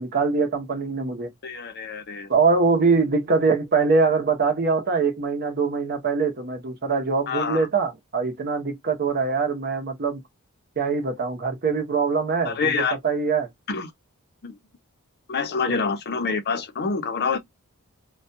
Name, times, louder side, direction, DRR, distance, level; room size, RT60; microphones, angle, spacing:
voice 1, 0.0-1.3 2.3-10.2 10.8-13.5 15.7-15.8, right 4 dB, 45° right, 0.8 m, -23 dB
voice 2, 1.4-2.3 7.3-7.7 12.4-13.0 13.7-13.9 14.4-14.6 15.3-17.4, left 5 dB, 50° left, 0.6 m, -26 dB
2.4 x 2.2 x 2.6 m
head